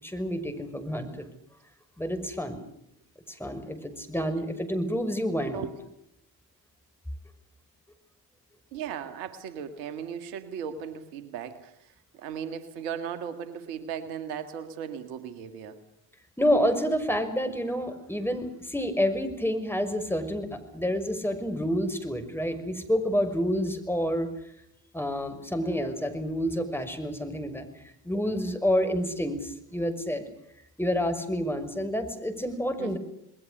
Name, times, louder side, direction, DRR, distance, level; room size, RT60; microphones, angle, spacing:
voice 1, 0.0-1.3 2.0-2.6 3.3-5.7 16.4-24.3 24.9-30.2 30.8-33.0, equal, 5° left, 7 dB, 6.0 m, -28 dB
voice 2, 8.7-11.7 12.2-15.8 32.8-33.0, right 8 dB, 85° right, 10 dB, 2.0 m, -37 dB
28.5 x 20.5 x 6.7 m, 0.79 s
hypercardioid pair, 50°, 48 cm